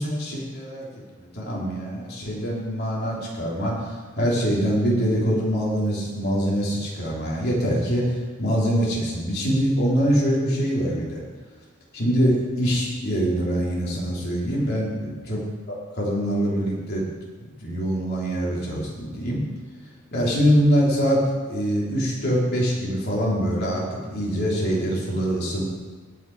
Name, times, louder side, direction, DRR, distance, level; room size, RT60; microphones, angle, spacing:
voice 1, 0.0-11.2 11.9-15.4 15.7-17.0 17.6-19.4 20.1-21.2 21.5-25.6, equal, 50° left, -4 dB, 3.3 m, -24 dB
17.5 x 6.0 x 4.7 m, 1.5 s
head